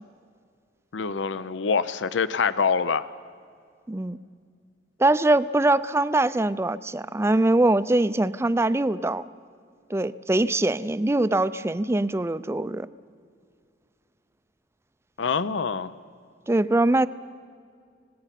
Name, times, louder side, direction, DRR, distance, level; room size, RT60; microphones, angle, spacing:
voice 1, 0.9-3.1 15.2-15.9, left 5 dB, 75° left, 15 dB, 0.6 m, -25 dB
voice 2, 3.9-4.2 5.0-9.2 9.9-12.9 16.5-17.1, right 2 dB, 15° right, 15 dB, 0.4 m, -22 dB
26.0 x 19.0 x 5.9 m, 2.2 s
head